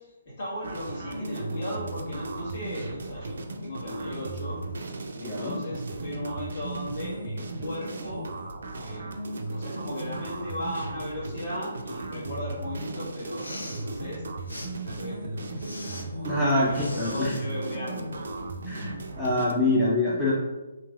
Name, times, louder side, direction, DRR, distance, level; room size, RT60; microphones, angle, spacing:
voice 1, 0.0-3.4 3.6-4.6 5.2-8.3 8.8-14.2 14.8-18.3, equal, 45° left, -7 dB, 1.4 m, -37 dB
sound 1, 0.6-19.5, right 2 dB, 55° right, 0.3 m, -36 dB
voice 2, 5.2-5.5 16.2-16.7 17.0-17.3 18.7-20.3, left 2 dB, 10° left, -8 dB, 0.5 m, -25 dB
Respiratory sounds, 13.2-13.8 14.5-14.7 15.6-16.0 16.7-17.4, left 1 dB, 75° left, 0.5 m, -41 dB
3.0 x 2.7 x 2.3 m, 1.1 s
figure-of-eight pair, 135°, 0 cm